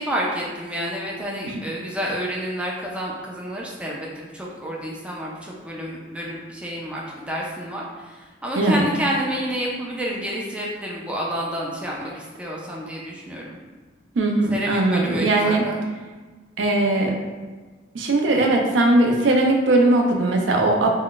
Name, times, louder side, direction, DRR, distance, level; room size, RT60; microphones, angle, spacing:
voice 1, 0.0-13.6 14.5-15.8, equal, 5° right, -4 dB, 0.3 m, -29 dB
voice 2, 14.2-15.7 16.6-17.2 17.9-20.9, right 2 dB, 75° right, 2 dB, 0.4 m, -19 dB
2.3 x 2.1 x 3.7 m, 1.3 s
head